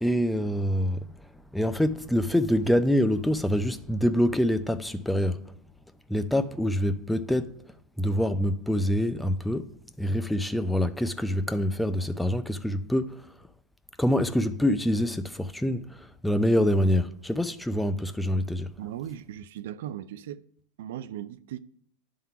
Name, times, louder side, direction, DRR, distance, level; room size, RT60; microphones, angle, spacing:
voice 1, 0.0-5.5 6.1-9.7 10.0-13.3 14.0-18.7, equal, 5° left, 0.5 m, -26 dB
voice 2, 18.8-20.4 20.8-21.6, right 11 dB, 75° right, 0.4 m, -37 dB
11.0 x 3.7 x 5.7 m
supercardioid pair, 120°, 0 cm